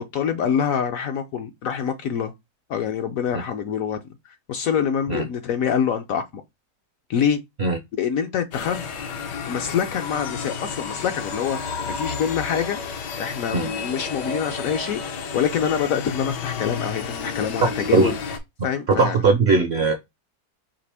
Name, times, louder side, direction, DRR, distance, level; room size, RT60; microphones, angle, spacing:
voice 1, 0.0-2.3 2.7-4.0 4.3-6.4 7.1-7.4 7.9-8.9 9.5-12.8 13.2-18.2 18.6-19.2, left 7 dB, 65° left, 0.9 m, -25 dB
sound 1, 8.5-18.4, left 5 dB, 80° left, 1.5 m, -31 dB
voice 2, 18.9-19.9, right 4 dB, 60° right, 0.7 m, -19 dB
5.0 x 2.8 x 3.3 m
omnidirectional pair, 1.8 m